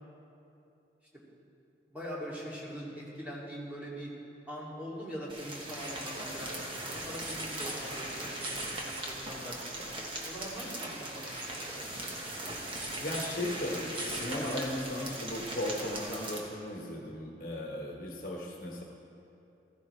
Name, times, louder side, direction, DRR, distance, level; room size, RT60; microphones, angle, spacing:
voice 1, 1.9-4.1 4.5-6.6 6.9-9.9 10.2-11.9, equal, 10° right, -8 dB, 2.5 m, -42 dB
sound 1, 5.3-16.4, right 1 dB, 30° right, 1.3 m, -39 dB
voice 2, 13.0-18.8, left 1 dB, 50° left, -1 dB, 1.3 m, -36 dB
15.0 x 14.0 x 3.3 m, 2.8 s
head